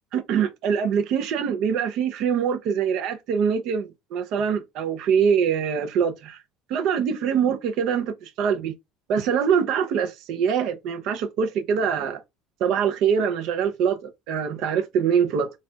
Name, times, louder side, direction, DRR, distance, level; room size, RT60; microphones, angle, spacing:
voice 1, 0.1-6.4 6.7-8.7 9.1-12.2 12.6-15.5, right 7 dB, 70° right, 0.7 m, -24 dB
4.1 x 2.4 x 2.4 m
cardioid pair, 110°, 0 cm